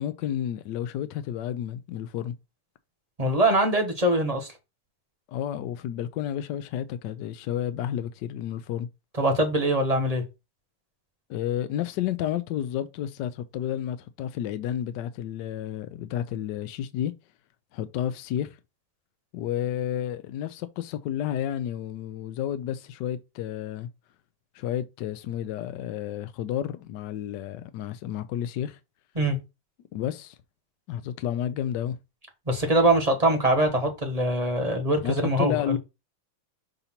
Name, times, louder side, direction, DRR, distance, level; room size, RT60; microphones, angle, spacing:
voice 1, 0.0-2.3 5.3-8.9 11.3-17.1 17.7-18.6 19.3-23.9 24.5-28.8 29.9-30.4 30.9-32.0 35.0-35.8, left 10 dB, 80° left, 1.0 m, -31 dB
voice 2, 3.2-4.5 9.2-10.2 29.1-29.4 32.5-35.8, right 1 dB, 25° right, 1.0 m, -23 dB
6.7 x 2.9 x 5.7 m
omnidirectional pair, 2.4 m